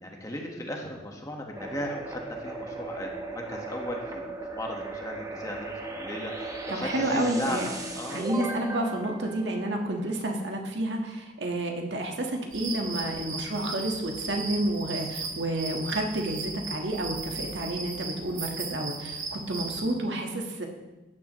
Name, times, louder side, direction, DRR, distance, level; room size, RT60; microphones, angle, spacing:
voice 1, 0.0-7.6 8.0-8.3, left 1 dB, 20° left, 1 dB, 1.4 m, -37 dB
sound 1, 1.6-10.2, right 3 dB, 20° right, 1.0 m, -37 dB
voice 2, 6.7-7.7 8.1-20.7, right 1 dB, 70° right, 2 dB, 1.6 m, -30 dB
sound 2, 12.5-19.9, right 4 dB, 45° right, 1.7 m, -37 dB
13.5 x 10.0 x 3.1 m, 1.1 s
head